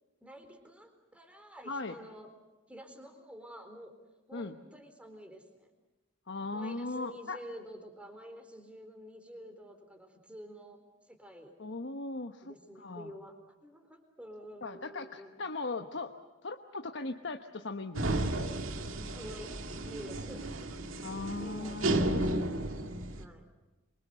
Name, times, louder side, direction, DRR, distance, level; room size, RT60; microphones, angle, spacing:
voice 1, 0.2-2.3 2.7-3.9 4.3-5.7 6.5-11.5 12.4-15.4 19.1-19.5 19.7-20.4 21.4-22.4 23.2-23.4, equal, 5° right, 6 dB, 4.1 m, -49 dB
voice 2, 1.7-2.0 4.3-4.5 6.3-7.4 11.6-13.1 14.6-16.1 16.4-18.3 21.0-22.5, left 3 dB, 60° left, 5 dB, 1.1 m, -38 dB
sound 1, 17.9-23.2, right 1 dB, 85° right, 2.1 m, -33 dB
27.0 x 24.5 x 6.7 m, 1.1 s
head